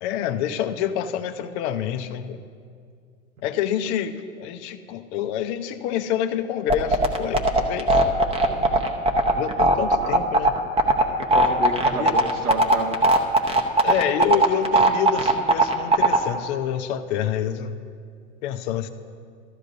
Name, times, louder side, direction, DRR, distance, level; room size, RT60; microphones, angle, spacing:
voice 1, 0.0-2.4 3.4-8.0 9.4-10.5 11.9-12.2 13.8-17.8 18.4-18.9, left 9 dB, 50° left, 9 dB, 0.7 m, -27 dB
sound 1, 6.7-16.2, right 2 dB, 15° right, 0.8 m, -17 dB
voice 2, 8.4-8.8 11.2-13.0, right 3 dB, 85° right, 1 dB, 1.6 m, -30 dB
14.5 x 11.5 x 2.6 m, 2.2 s
hypercardioid pair, 100°, 41 cm